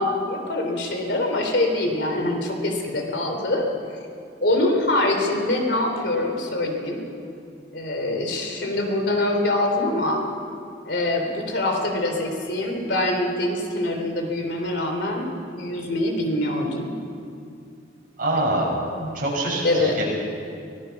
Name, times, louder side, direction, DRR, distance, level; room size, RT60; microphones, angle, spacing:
voice 1, 0.0-3.7 4.4-7.0 7.7-10.2 10.9-17.0 19.0-19.1 19.6-20.0, left 1 dB, 65° left, 2 dB, 3.4 m, -24 dB
voice 2, 18.2-20.0, right 1 dB, 50° right, -3 dB, 6.4 m, -25 dB
24.5 x 18.0 x 5.9 m, 2.5 s
head